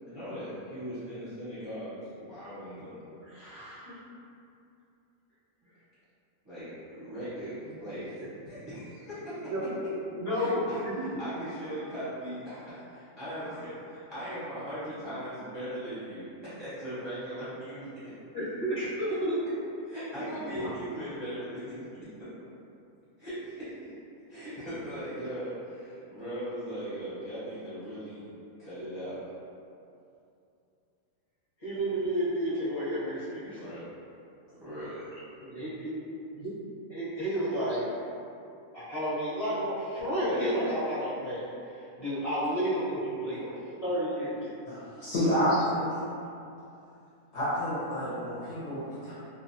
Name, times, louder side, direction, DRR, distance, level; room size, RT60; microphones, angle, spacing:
voice 1, 0.1-3.0 6.4-9.7 10.3-17.9 19.9-21.9 23.2-23.7 24.3-28.2 28.6-29.2 33.5-33.9 34.5-35.1, equal, 25° right, -14 dB, 0.6 m, -39 dB
voice 2, 3.2-4.0 9.5-9.7 10.1-11.2 18.3-19.4 20.2-20.7 31.6-33.6 35.4-36.0 36.3-36.5 36.9-37.9 38.7-43.5 43.8-44.5 45.5-45.6, equal, 30° left, -14 dB, 0.7 m, -31 dB
voice 3, 44.7-45.8 47.3-49.1, equal, 60° left, -11 dB, 0.8 m, -29 dB
2.4 x 2.1 x 2.7 m, 2.6 s
omnidirectional pair, 1.6 m